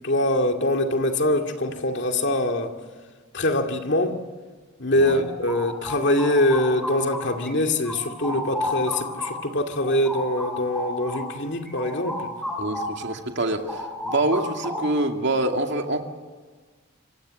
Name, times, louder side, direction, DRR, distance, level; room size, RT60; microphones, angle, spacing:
voice 1, 0.0-2.7 3.3-4.2 4.8-12.3, left 1 dB, 50° left, 2.4 m, -23 dB
voice 2, 4.9-5.2 12.6-16.0, right 2 dB, 50° right, 2.4 m, -26 dB
sound 1, 5.2-7.5 7.8-13.1 13.4-15.1, left 1 dB, ahead, 7.5 m, -32 dB
27.0 x 24.0 x 7.7 m
head